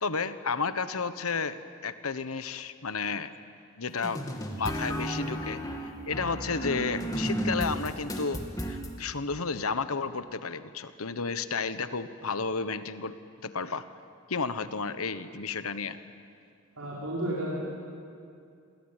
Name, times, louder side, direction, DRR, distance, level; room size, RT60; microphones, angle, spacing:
voice 1, 0.0-3.3 3.8-4.2 4.6-8.4 8.7-13.9 14.3-16.0, left 4 dB, 85° left, 12 dB, 1.2 m, -32 dB
sound 1, 4.0-8.9, right 1 dB, 15° left, 2.2 m, -33 dB
voice 2, 16.8-17.6, right 1 dB, 85° right, -6 dB, 5.5 m, -32 dB
28.5 x 22.5 x 9.1 m, 2.5 s
head